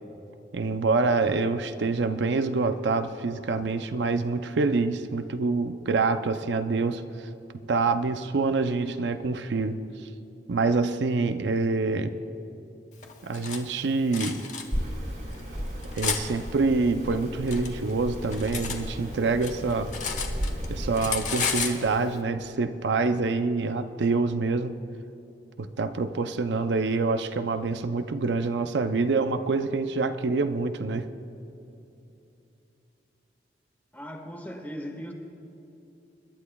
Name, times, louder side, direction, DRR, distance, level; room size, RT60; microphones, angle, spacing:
voice 1, 0.5-7.3 7.7-9.8 10.5-12.1 13.2-14.4 16.0-19.9 20.7-24.8 25.6-31.1, right 3 dB, 75° right, 9 dB, 0.5 m, -26 dB
Cutlery silverware, 13.0-13.6 14.1-14.6 15.3-16.2 17.1-18.8 19.1-20.7 20.9-21.8, left 6 dB, 40° left, 1.1 m, -32 dB
sound 1, 14.7-21.1, equal, 50° right, 2.0 m, -34 dB
voice 2, 33.9-35.1, equal, 10° left, 3 dB, 1.2 m, -38 dB
26.5 x 12.0 x 2.3 m, 2.9 s
head